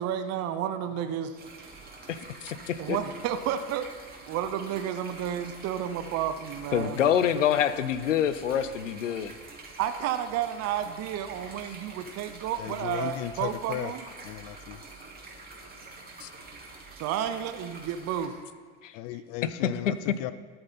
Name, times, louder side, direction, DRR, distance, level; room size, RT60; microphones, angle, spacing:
voice 1, 0.0-1.4 2.8-3.9 4.3-7.0 9.8-14.0 16.9-18.3, right 10 dB, 45° right, 9 dB, 0.8 m, -31 dB
sound 1, 1.3-18.3, right 3 dB, 25° right, 2.4 m, -46 dB
voice 2, 2.1-3.0 6.7-9.3 16.2-16.3 18.8-18.9 19.4-19.5, left 9 dB, 90° left, 13 dB, 0.7 m, -26 dB
voice 3, 12.6-13.9 14.2-14.8 18.9-20.3, left 14 dB, 50° left, 14 dB, 0.5 m, -35 dB
13.0 x 7.8 x 4.3 m, 1.5 s
hypercardioid pair, 85°, 36 cm